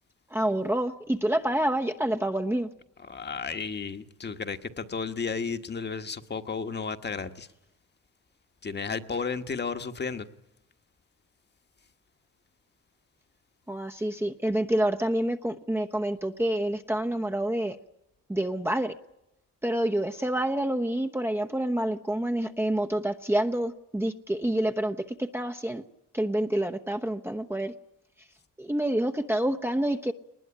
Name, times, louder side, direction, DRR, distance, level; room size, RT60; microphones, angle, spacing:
voice 1, 0.3-2.7 13.7-17.8 18.3-18.9 19.6-25.8 26.1-27.7 28.6-30.1, right 1 dB, 10° right, 1.0 m, -28 dB
voice 2, 3.0-7.5 8.6-10.3, left 5 dB, 35° left, 1.5 m, -33 dB
20.5 x 20.0 x 10.0 m
cardioid pair, 90°, 30 cm